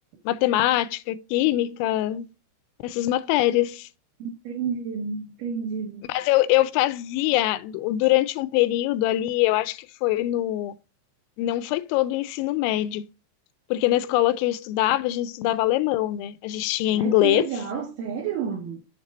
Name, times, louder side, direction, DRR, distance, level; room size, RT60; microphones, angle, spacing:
voice 1, 0.3-2.3 2.8-3.9 6.1-10.7 11.4-13.1 13.7-17.5, left 15 dB, 85° left, 2.9 m, -23 dB
voice 2, 4.2-6.2 16.9-18.8, right 6 dB, 65° right, 2.4 m, -30 dB
7.4 x 4.7 x 4.1 m
omnidirectional pair, 5.3 m